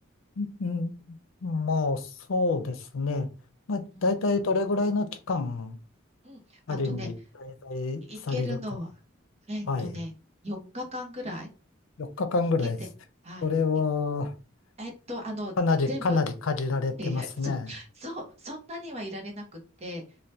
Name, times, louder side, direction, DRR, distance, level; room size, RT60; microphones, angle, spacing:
voice 1, 0.4-1.2 1.4-3.3 3.7-5.8 6.7-7.1 7.4-8.6 9.7-9.9 12.0-12.8 13.4-14.3 15.6-17.7, left 3 dB, 90° left, 0.5 m, -28 dB
voice 2, 6.2-7.1 8.1-8.9 9.5-10.1 10.4-11.5 12.6-12.9 13.2-13.5 14.8-15.5 15.9-16.2 17.0-19.4 19.8-20.0, left 1 dB, 30° right, 0.8 m, -37 dB
2.7 x 2.2 x 3.3 m
head